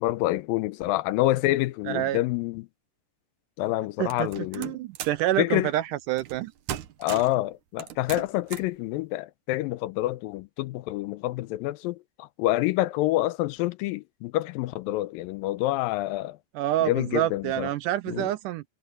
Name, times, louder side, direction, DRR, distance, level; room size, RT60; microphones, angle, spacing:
voice 1, 0.0-2.7 3.6-4.7 5.4-5.7 7.0-16.4 16.9-17.7 18.1-18.3, left 17 dB, 85° left, 2.3 m, -27 dB
voice 2, 1.9-2.2 4.0-4.3 4.5-6.5 16.5-18.6, right 14 dB, 80° right, 2.0 m, -27 dB
sound 1, 4.1-5.3 6.2-6.4 6.7-7.4 7.8-8.8, right 11 dB, 65° right, 2.3 m, -37 dB
omnidirectional pair, 4.1 m